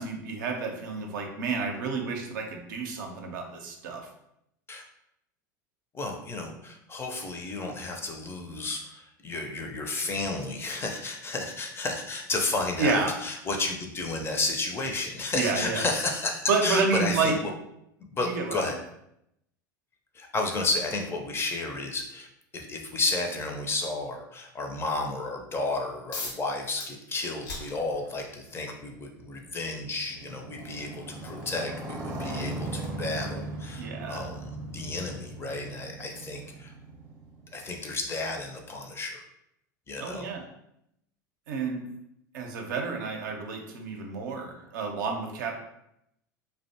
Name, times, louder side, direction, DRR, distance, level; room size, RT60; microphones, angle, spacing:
voice 1, 0.0-4.1 12.8-13.1 15.3-15.9 16.5-17.3 18.2-18.6 33.8-34.3 40.0-40.4 41.5-41.8 42.3-45.5, right 4 dB, 75° right, 2 dB, 0.5 m, -29 dB
voice 2, 5.9-17.5 18.1-18.8 20.1-22.3 22.5-36.7 37.5-39.2 39.9-40.3, left 3 dB, 25° left, 2 dB, 0.4 m, -32 dB
sound 1, 26.1-26.5 26.8-28.3 29.4-29.5 30.1-36.7, left 3 dB, 75° left, 0.7 m, -45 dB
Motorcycle, 28.3-38.0, right 1 dB, 30° right, 0.7 m, -39 dB
2.5 x 2.1 x 2.7 m, 0.79 s
hypercardioid pair, 90°, 10 cm